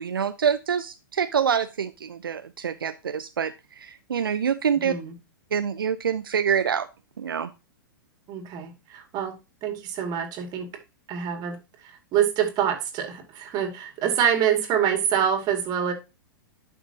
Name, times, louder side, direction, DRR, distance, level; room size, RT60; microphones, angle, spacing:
voice 1, 0.0-4.9 5.5-6.9 7.2-7.5, right 7 dB, 75° right, 0.6 m, -26 dB
voice 2, 4.8-5.1 8.3-9.3 9.6-10.7 11.1-11.6 11.8-15.9, right 9 dB, 35° right, 2.3 m, -26 dB
11.0 x 5.5 x 2.8 m
figure-of-eight pair, 105°, 12 cm